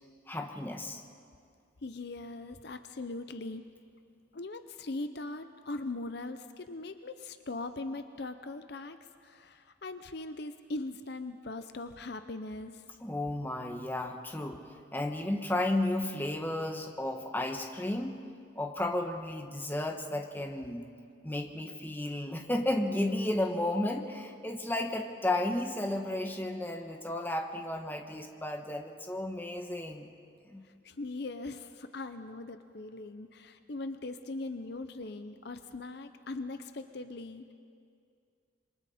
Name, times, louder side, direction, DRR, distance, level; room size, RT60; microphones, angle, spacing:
voice 1, 0.3-1.0 13.0-18.2 18.5-20.8 21.2-30.1 30.5-30.6, left 1 dB, 10° left, 4 dB, 1.1 m, -33 dB
voice 2, 1.8-3.6 4.3-12.8 30.8-37.5, left 2 dB, 55° left, 9 dB, 0.7 m, -40 dB
27.0 x 24.0 x 4.3 m, 2.2 s
head